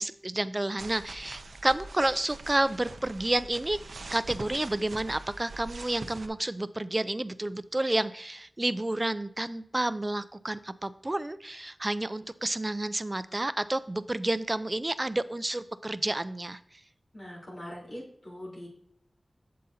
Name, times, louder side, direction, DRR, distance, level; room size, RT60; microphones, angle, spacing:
voice 1, 0.0-3.8 4.1-16.8, right 1 dB, 30° right, 14 dB, 0.4 m, -30 dB
sound 1, 0.8-6.3, right 3 dB, 85° right, 0.5 m, -43 dB
voice 2, 17.1-18.7, equal, 65° left, -7 dB, 3.4 m, -42 dB
7.7 x 7.5 x 2.8 m, 0.67 s
wide cardioid pair, 60°, 0 cm